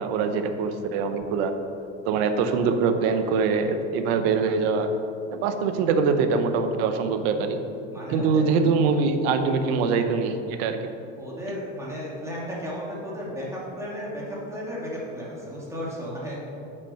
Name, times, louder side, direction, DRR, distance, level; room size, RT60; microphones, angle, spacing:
voice 1, 0.0-1.5 2.1-4.9 5.3-7.6 8.1-10.8, right 5 dB, 75° right, 8 dB, 1.0 m, -23 dB
voice 2, 7.9-8.4 11.2-16.4, equal, 10° right, -5 dB, 2.5 m, -34 dB
8.6 x 6.8 x 5.6 m, 2.6 s
supercardioid pair, 140°, 31 cm